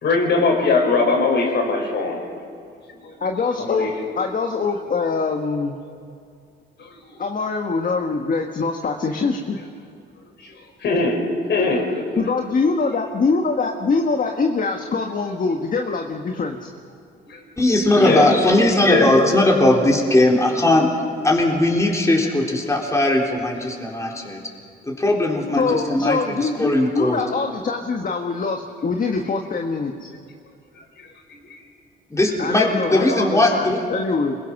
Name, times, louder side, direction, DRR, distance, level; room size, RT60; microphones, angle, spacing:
voice 1, 0.0-2.2 3.0-3.1 3.6-3.9 6.8-7.2 10.8-11.2 11.5-12.0 17.3-17.4 18.0-18.2 18.8-19.1, left 3 dB, 60° left, 1 dB, 5.4 m, -20 dB
voice 2, 3.2-5.8 7.2-9.6 12.2-16.7 25.5-30.1 32.4-34.4, left 4 dB, 45° left, 3 dB, 1.6 m, -23 dB
voice 3, 17.6-24.4 24.8-27.2 32.1-33.8, left 1 dB, 15° left, -1 dB, 3.9 m, -19 dB
26.0 x 22.0 x 6.1 m, 2.3 s
cardioid pair, 90°, 20 cm